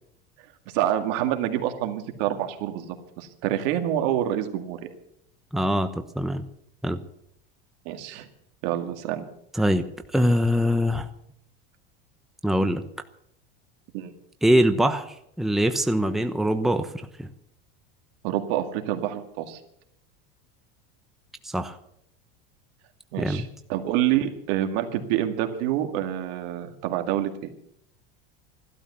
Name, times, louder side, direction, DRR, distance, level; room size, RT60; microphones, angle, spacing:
voice 1, 0.7-4.9 7.9-8.3 8.6-9.2 13.9-14.1 18.2-19.6 23.1-27.5, right 12 dB, 70° right, 5 dB, 2.2 m, -27 dB
voice 2, 5.5-6.4 6.8-7.0 9.5-9.8 10.1-11.1 12.4-12.8 14.4-15.1 15.4-16.9 17.2-17.3 21.4-21.7 23.2-23.4, equal, ahead, 7 dB, 1.0 m, -23 dB
15.0 x 12.5 x 6.9 m, 0.73 s
supercardioid pair, 110°, 30 cm